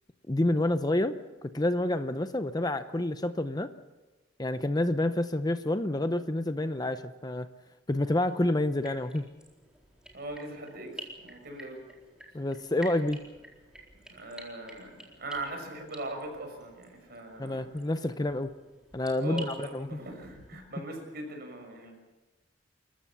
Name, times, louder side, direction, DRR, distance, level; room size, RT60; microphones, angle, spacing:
voice 1, 0.3-3.7 4.4-7.5 7.9-9.2 12.3-13.2 17.4-18.5 18.9-19.9, left 1 dB, 20° left, 10 dB, 0.7 m, -28 dB
sound 1, 8.7-20.5, right 1 dB, 5° right, 4.2 m, -50 dB
voice 2, 10.1-11.8 14.1-17.6 19.2-22.0, right 1 dB, 50° right, 3 dB, 6.2 m, -40 dB
29.5 x 15.0 x 7.1 m, 1.2 s
head